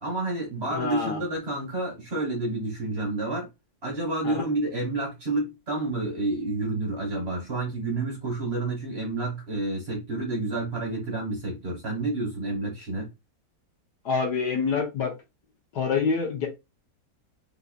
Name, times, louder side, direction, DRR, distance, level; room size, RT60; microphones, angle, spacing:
voice 1, 0.0-3.5 3.8-13.1, right 2 dB, 35° right, 1.5 m, -29 dB
voice 2, 0.7-1.2 4.2-4.4 14.0-15.1 15.7-16.5, left 5 dB, 65° left, 1.6 m, -26 dB
3.9 x 2.9 x 2.4 m
omnidirectional pair, 2.0 m